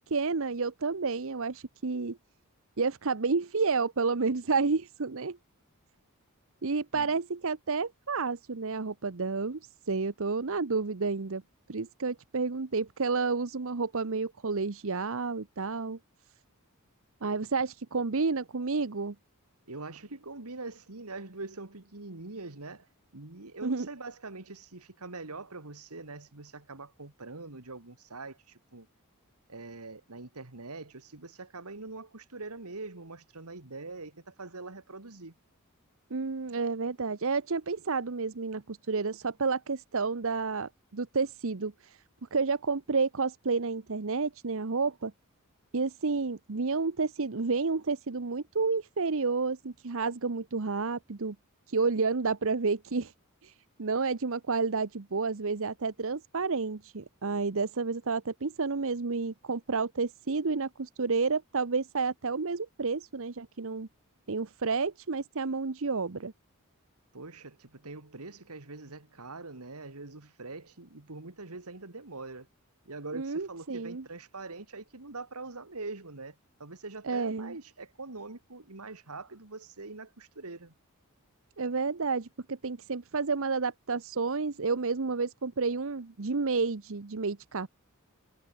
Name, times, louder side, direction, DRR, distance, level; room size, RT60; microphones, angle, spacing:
voice 1, 0.1-2.2 2.8-5.4 6.6-11.4 11.7-16.0 17.2-19.1 23.6-23.9 36.1-42.0 42.3-45.1 45.7-51.4 51.7-53.1 53.4-53.5 53.8-63.9 64.3-66.3 73.1-74.0 77.0-77.5 81.6-87.7, right 4 dB, 65° right, 0.9 m, -30 dB
voice 2, 19.7-22.9 23.1-28.9 29.5-35.3 67.1-72.5 72.9-80.7, right 3 dB, 85° right, 2.4 m, -43 dB
head